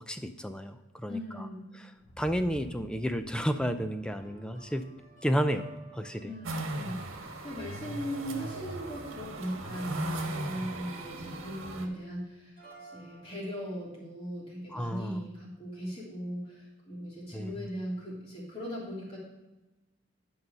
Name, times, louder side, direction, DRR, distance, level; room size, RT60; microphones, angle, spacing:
voice 1, 0.0-1.5 2.2-4.8 5.2-5.7 5.9-6.3 14.7-15.2 17.3-17.6, equal, 5° left, 8 dB, 0.4 m, -31 dB
voice 2, 1.1-1.7 6.2-19.2, equal, 30° left, -5 dB, 3.2 m, -39 dB
sound 1, 2.0-6.0, equal, 70° left, 2.9 m, -52 dB
sound 2, 4.2-12.0 12.6-13.8, right 3 dB, 45° left, 3.6 m, -56 dB
sound 3, 6.4-11.9, right 1 dB, 80° right, 1.3 m, -37 dB
10.5 x 5.4 x 5.5 m, 1.1 s
head